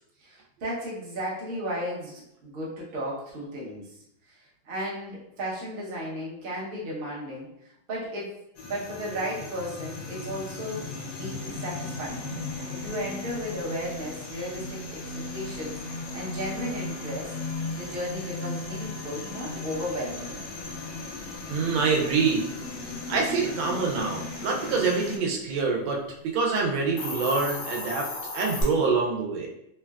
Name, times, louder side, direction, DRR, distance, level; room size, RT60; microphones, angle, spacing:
voice 1, 0.2-8.4 8.6-10.8 11.1-12.3 12.7-17.4 17.8-20.4, equal, 45° right, -6 dB, 0.7 m, -35 dB
sound 1, 8.6-25.2, left 3 dB, 70° left, 1.0 m, -36 dB
voice 2, 21.5-22.4 23.1-26.0 26.3-29.5, right 4 dB, 80° right, 0 dB, 1.4 m, -26 dB
Hiss, 26.8-28.6, left 2 dB, 85° left, 1.6 m, -34 dB
3.8 x 2.1 x 2.3 m, 0.78 s
omnidirectional pair, 2.1 m